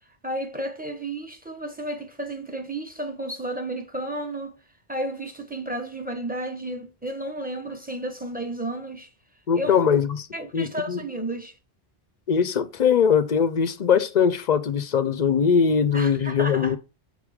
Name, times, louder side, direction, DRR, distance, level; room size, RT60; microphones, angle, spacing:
voice 1, 0.2-4.6 4.9-9.1 9.5-9.8 10.3-11.6 15.7-16.8, right 1 dB, 10° right, 0.9 m, -32 dB
voice 2, 9.5-10.3 10.5-11.0 12.3-16.8, left 7 dB, 55° left, 0.5 m, -21 dB
6.6 x 3.4 x 4.8 m
omnidirectional pair, 1.1 m